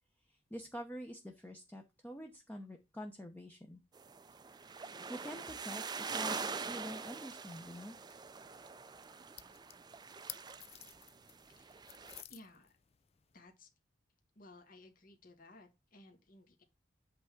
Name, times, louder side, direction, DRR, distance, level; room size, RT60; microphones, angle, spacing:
voice 1, 0.3-3.8 5.1-5.8 6.1-8.0, equal, 10° left, 0.8 m, -46 dB
sound 1, 3.9-12.2, right 5 dB, 25° right, 0.5 m, -44 dB
sound 2, 6.2-13.4, left 12 dB, 35° left, 0.4 m, -56 dB
voice 2, 11.6-11.9 12.3-12.8 13.3-13.7 14.3-16.6, left 1 dB, 50° left, 1.5 m, -58 dB
8.2 x 3.5 x 5.8 m
head